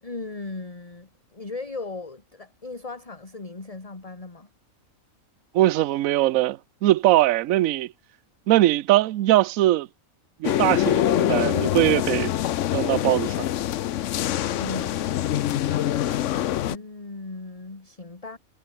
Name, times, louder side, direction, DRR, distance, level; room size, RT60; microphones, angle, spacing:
voice 1, 0.0-4.5 14.5-18.4, left 3 dB, 25° left, 2.0 m, -38 dB
voice 2, 5.5-7.9 8.5-9.9 10.4-12.3 12.7-13.5, right 15 dB, 75° right, 1.0 m, -21 dB
sound 1, 10.4-16.8, left 12 dB, 65° left, 0.9 m, -24 dB
omnidirectional pair, 1.5 m